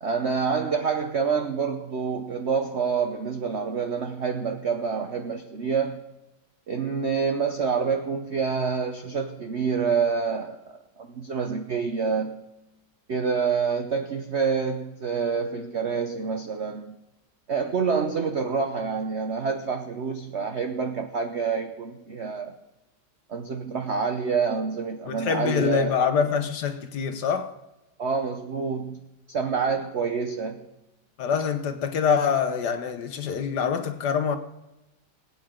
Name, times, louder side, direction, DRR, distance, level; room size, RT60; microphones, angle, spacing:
voice 1, 0.0-6.0 6.7-10.6 11.0-12.5 13.1-17.0 17.5-22.5 23.3-26.0 28.0-29.0 29.3-30.7, right 5 dB, 75° right, 0.6 m, -27 dB
voice 2, 25.1-27.5 31.2-34.4, left 6 dB, 60° left, 1.3 m, -25 dB
20.5 x 8.7 x 3.7 m
omnidirectional pair, 2.3 m